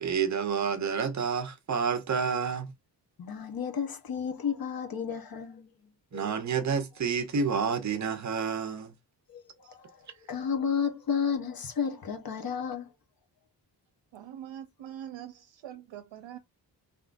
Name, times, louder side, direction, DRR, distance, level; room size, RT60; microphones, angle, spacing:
voice 1, 0.0-2.7 6.1-8.9, right 6 dB, 40° right, 0.6 m, -29 dB
voice 2, 3.2-5.7 6.1-6.2 9.3-9.4 9.7-9.9 10.2-12.9, left 7 dB, 55° left, 1.0 m, -32 dB
voice 3, 14.1-16.4, right 10 dB, 85° right, 0.6 m, -43 dB
3.6 x 2.9 x 2.5 m
wide cardioid pair, 170°, 44 cm